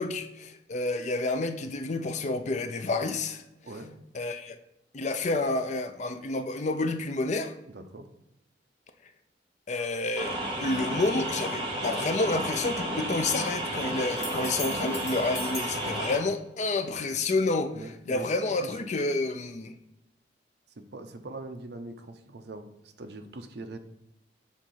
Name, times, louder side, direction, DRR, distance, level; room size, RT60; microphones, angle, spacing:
voice 1, 0.0-3.4 4.1-4.6 4.9-7.5 9.7-19.7, left 2 dB, 40° left, 0.5 m, -29 dB
voice 2, 7.7-8.1 17.7-18.3 20.9-23.8, right 2 dB, 65° right, 0.7 m, -42 dB
sound 1, 10.2-16.2, right 1 dB, 30° right, 1.3 m, -32 dB
sound 2, 14.2-15.8 19.5-19.6, left 2 dB, 15° left, 1.0 m, -39 dB
7.2 x 2.7 x 5.6 m
head